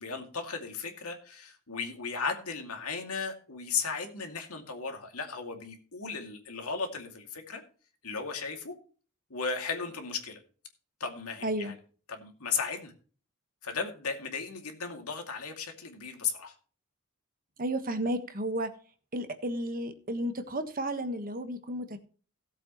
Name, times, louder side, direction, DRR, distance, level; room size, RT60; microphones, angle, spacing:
voice 1, 0.0-7.6 8.0-8.7 9.3-10.4 11.0-11.7 12.1-12.9 13.6-16.5, left 5 dB, 80° left, 4 dB, 2.4 m, -35 dB
voice 2, 11.4-11.7 17.6-18.7 19.1-22.0, right 1 dB, 40° right, 8 dB, 1.3 m, -32 dB
17.5 x 7.8 x 3.0 m, 0.39 s
head